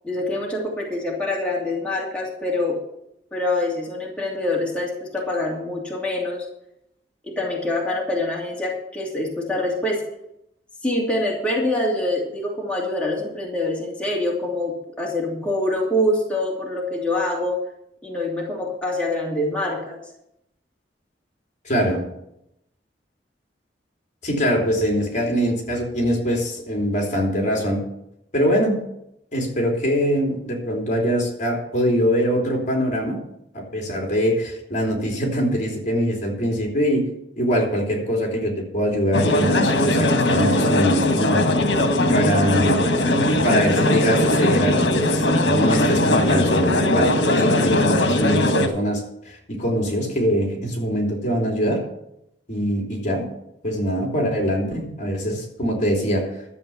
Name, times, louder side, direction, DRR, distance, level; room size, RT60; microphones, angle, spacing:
voice 1, 0.0-2.8 3.3-6.5 7.2-10.0 10.8-17.6 18.0-20.0, left 1 dB, 5° left, -4 dB, 2.8 m, -25 dB
voice 2, 21.6-22.0 24.2-27.8 28.3-28.8 29.3-33.2 33.5-37.1 37.4-41.4 42.1-42.8 43.4-51.8 52.5-53.3 53.6-56.3, equal, 45° left, 1 dB, 3.2 m, -23 dB
sound 1, 39.1-48.7, left 1 dB, 80° left, 1.4 m, -19 dB
12.5 x 7.7 x 7.1 m, 0.79 s
head